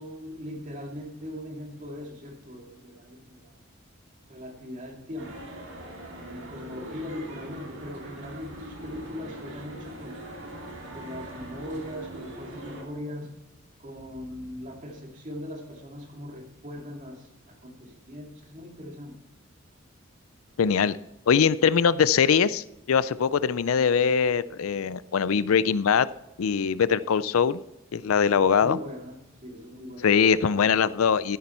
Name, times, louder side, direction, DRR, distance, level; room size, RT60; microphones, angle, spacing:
voice 1, 0.0-3.6 4.3-5.4 6.2-10.2 10.9-13.3 13.8-19.2 28.6-30.5, left 1 dB, 35° right, 2 dB, 2.3 m, -40 dB
sound 1, 5.2-12.8, right 1 dB, 60° right, 2.8 m, -42 dB
Breathing, 7.9-8.1 8.3-9.4 9.9-10.6 11.0-12.1 12.6-13.3 13.8-14.8 15.4-16.0, equal, 15° left, 2.8 m, -54 dB
voice 2, 20.6-21.0 21.3-26.1 26.4-27.6 27.9-28.8 30.0-31.4, left 6 dB, 80° left, 17 dB, 0.4 m, -22 dB
13.5 x 9.8 x 4.3 m, 0.89 s
head